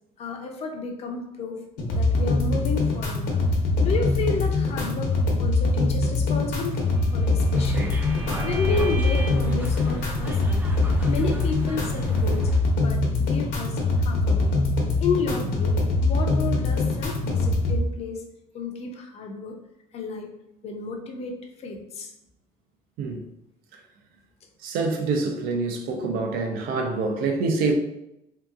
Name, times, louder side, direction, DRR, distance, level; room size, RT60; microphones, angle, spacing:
voice 1, 0.2-3.3 3.8-6.9 7.1-8.0 8.4-10.6 11.1-14.5 15.0-18.3 18.5-19.6 19.9-20.3 20.6-22.1, left 4 dB, 45° left, 0.5 m, -32 dB
sound 1, 1.8-17.8, left 2 dB, 75° left, 0.8 m, -23 dB
Bowed string instrument, 6.6-9.6, right 2 dB, 55° right, 1.0 m, -40 dB
sound 2, 7.5-12.6, right 1 dB, 10° right, 0.4 m, -36 dB
voice 2, 24.6-27.7, right 3 dB, 85° right, 0.6 m, -26 dB
3.5 x 2.8 x 2.4 m
cardioid pair, 160°, 15 cm